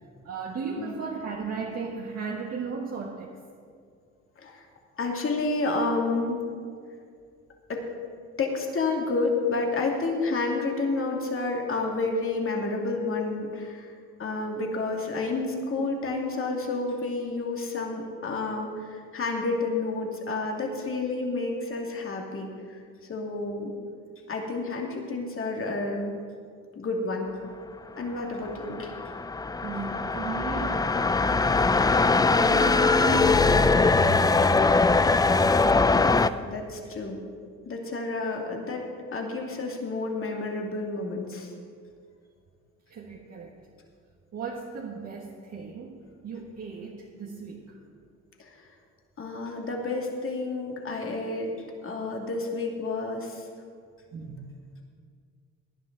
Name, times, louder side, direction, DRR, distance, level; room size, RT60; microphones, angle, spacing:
voice 1, 0.2-3.4 9.0-9.1 15.8-16.1 29.6-34.6 42.9-43.5 44.3-47.8 54.1-54.5, right 5 dB, 55° right, -3 dB, 1.7 m, -36 dB
voice 2, 5.0-6.4 7.7-7.9 8.4-13.9 14.2-22.8 23.1-23.7 24.3-26.2 26.7-27.3 28.0-28.9 35.8-37.2 37.6-41.5 48.4-48.7 49.2-51.5 51.8-53.5, left 3 dB, 45° left, 1 dB, 2.5 m, -30 dB
sound 1, 28.3-36.3, left 3 dB, 15° left, 0.4 m, -21 dB
18.5 x 10.5 x 4.0 m, 2.2 s
cardioid pair, 90°, 30 cm